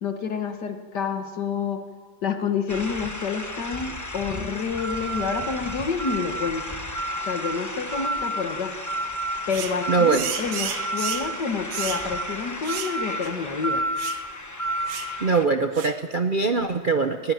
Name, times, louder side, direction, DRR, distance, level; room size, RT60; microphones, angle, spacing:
voice 1, 0.0-1.9 2.2-6.8 7.3-8.8 9.5-13.9, left 6 dB, 65° left, 7 dB, 2.1 m, -28 dB
sound 1, 2.7-15.4, equal, 15° left, 0.8 m, -31 dB
sound 2, 9.5-9.8 10.1-11.3 11.7-12.1 12.6-13.0 13.2-13.3 14.0-14.2 14.9-15.1 15.7-16.0, right 9 dB, 75° right, 1.6 m, -32 dB
voice 2, 9.9-10.2 15.2-17.3, right 4 dB, 55° right, 7 dB, 0.5 m, -22 dB
19.5 x 15.5 x 9.2 m, 1.5 s
omnidirectional pair, 2.0 m